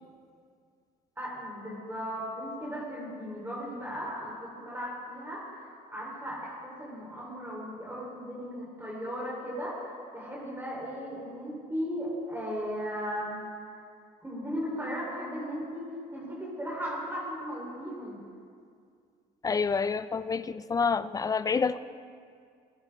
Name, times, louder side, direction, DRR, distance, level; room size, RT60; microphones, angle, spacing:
voice 1, 1.2-13.4 14.2-18.2, equal, 15° right, -5 dB, 3.8 m, -36 dB
voice 2, 19.4-21.8, left 5 dB, 20° left, 15 dB, 0.4 m, -28 dB
20.5 x 10.5 x 3.6 m, 2.2 s
cardioid pair, 110°, 17 cm